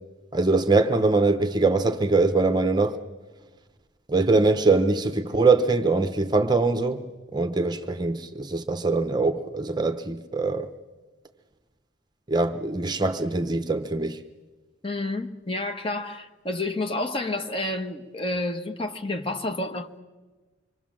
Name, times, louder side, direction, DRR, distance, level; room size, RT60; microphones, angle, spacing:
voice 1, 0.3-3.0 4.1-7.0 7.3-10.7 12.3-14.2, right 3 dB, 20° right, 0.8 m, -22 dB
voice 2, 14.8-20.0, left 2 dB, 25° left, 1.3 m, -30 dB
26.0 x 24.0 x 7.5 m
head